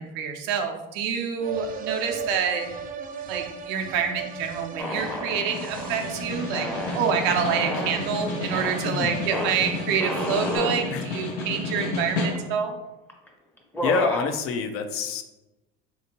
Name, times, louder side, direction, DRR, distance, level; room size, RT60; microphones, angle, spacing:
voice 1, 0.0-2.7 3.3-6.7 6.9-12.7, right 7 dB, 80° right, 3 dB, 0.6 m, -27 dB
sound 1, 1.4-10.6, right 6 dB, 30° right, 0.3 m, -37 dB
Snare drum, 4.8-12.7, left 2 dB, 85° left, 0.8 m, -32 dB
sound 2, 4.8-6.1 6.5-8.0 8.5-8.8 9.3-9.5 10.0-10.8 11.4-11.5 11.7-12.5 13.1-13.3 13.6-14.3, left 1 dB, 5° left, 0.7 m, -31 dB
voice 2, 8.8-9.2 10.9-11.4 13.8-15.2, left 5 dB, 50° left, 7 dB, 0.5 m, -27 dB
3.4 x 2.7 x 2.9 m, 1.0 s
supercardioid pair, 85°, 30 cm